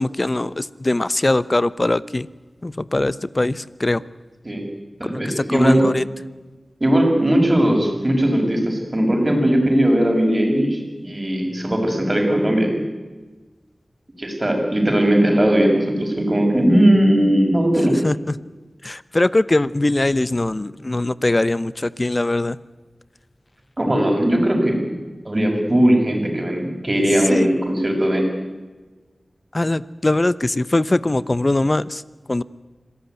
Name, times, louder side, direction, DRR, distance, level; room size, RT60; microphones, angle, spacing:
voice 1, 0.0-2.3 2.6-4.0 5.3-6.0 17.9-18.3 18.8-22.6 27.3-27.5 29.5-32.0 32.3-32.4, left 2 dB, 35° left, 17 dB, 0.8 m, -21 dB
voice 2, 5.0-5.8 6.8-12.7 14.2-17.9 23.8-24.9 25.2-28.2, right 1 dB, 30° right, 2 dB, 6.6 m, -18 dB
26.0 x 17.0 x 9.4 m, 1.3 s
wide cardioid pair, 60°, 0 cm